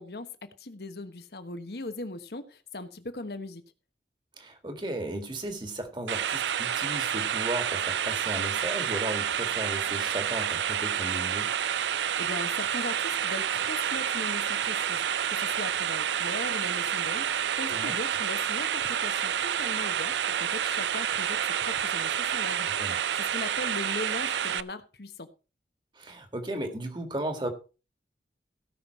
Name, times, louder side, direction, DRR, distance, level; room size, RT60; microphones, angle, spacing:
voice 1, 0.0-3.6 12.2-25.3, left 2 dB, 65° left, 1.2 m, -39 dB
voice 2, 4.4-11.5 17.7-18.0 22.6-22.9 26.0-27.5, right 1 dB, 25° right, 1.8 m, -35 dB
sound 1, 6.1-24.6, right 9 dB, 85° right, 0.5 m, -29 dB
17.0 x 5.9 x 4.4 m
head